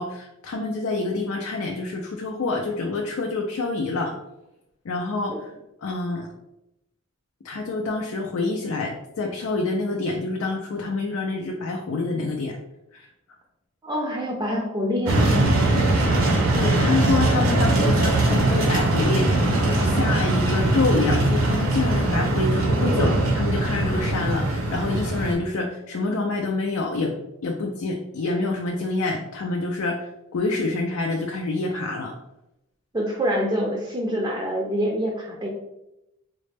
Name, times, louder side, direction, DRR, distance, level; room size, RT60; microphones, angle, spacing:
voice 1, 0.0-4.1 4.8-5.5 5.8-6.3 7.4-12.6 12.9-13.1 16.5-27.1 27.4-30.1 30.3-32.1, left 3 dB, 80° left, 1 dB, 0.4 m, -27 dB
voice 2, 13.8-15.2 32.9-35.5, equal, 15° right, -1 dB, 0.4 m, -26 dB
sound 1, 15.1-25.3, right 2 dB, 75° right, 0.7 m, -21 dB
4.0 x 2.1 x 3.3 m, 0.88 s
head